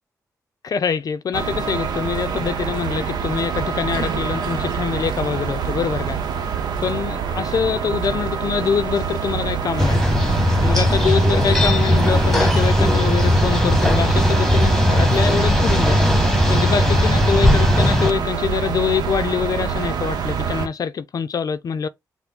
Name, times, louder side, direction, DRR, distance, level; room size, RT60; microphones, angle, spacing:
voice 1, 0.6-6.2 6.8-10.0 10.6-16.0 16.5-21.9, left 6 dB, 60° left, 0.4 m, -24 dB
sound 1, 1.3-20.7, right 6 dB, 85° right, 0.7 m, -26 dB
sound 2, 9.8-18.1, left 1 dB, 5° left, 1.1 m, -17 dB
5.8 x 2.0 x 3.6 m
cardioid pair, 55°, 7 cm